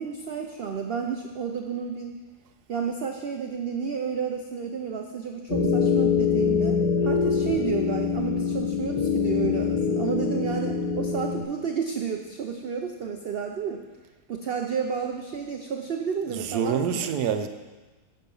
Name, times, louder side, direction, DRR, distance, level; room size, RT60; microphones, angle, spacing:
voice 1, 0.0-2.2 2.7-13.8 14.3-17.1, right 6 dB, 55° right, 3 dB, 0.6 m, -31 dB
sound 1, 5.5-11.4, left 6 dB, 30° left, 1.0 m, -24 dB
voice 2, 16.3-17.5, right 7 dB, 80° right, 8 dB, 1.3 m, -26 dB
10.0 x 7.0 x 5.3 m, 1.3 s
omnidirectional pair, 1.7 m